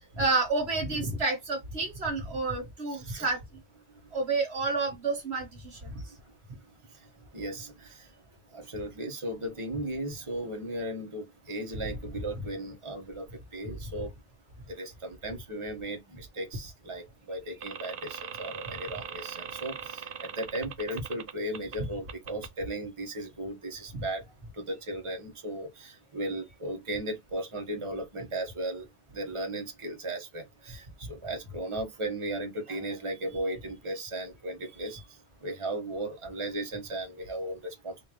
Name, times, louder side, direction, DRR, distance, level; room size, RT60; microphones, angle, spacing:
voice 1, 0.2-3.4 4.1-5.5 23.9-24.0, right 3 dB, 80° right, 1.7 m, -29 dB
voice 2, 2.9-3.3 7.3-8.1 8.5-13.3 13.5-14.1 14.7-24.2 24.5-28.9 29.1-37.9, right 1 dB, 30° right, 1.2 m, -36 dB
sound 1, 17.6-21.8 22.1-22.5, right 7 dB, 60° right, 0.8 m, -40 dB
3.8 x 2.9 x 3.0 m
omnidirectional pair, 1.1 m